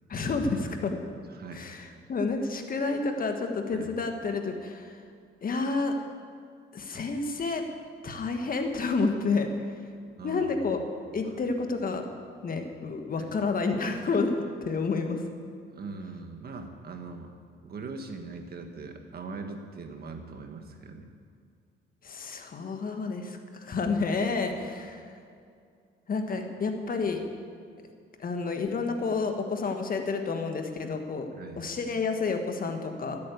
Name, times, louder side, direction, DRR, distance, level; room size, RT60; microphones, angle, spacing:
voice 1, 0.1-1.0 1.5-5.0 5.4-6.0 6.7-7.6 8.0-9.8 10.2-10.8 11.1-12.0 12.4-15.2 22.0-25.1 26.1-27.2 28.2-31.3 31.6-33.2, left 4 dB, 45° left, 5 dB, 1.5 m, -30 dB
voice 2, 1.3-1.6 3.7-3.9 10.2-10.9 11.2-11.4 13.2-13.3 15.7-17.3 17.6-21.1 31.3-31.7, right 4 dB, 50° right, 5 dB, 1.6 m, -41 dB
12.5 x 8.6 x 8.3 m, 2.3 s
cardioid pair, 90°, 20 cm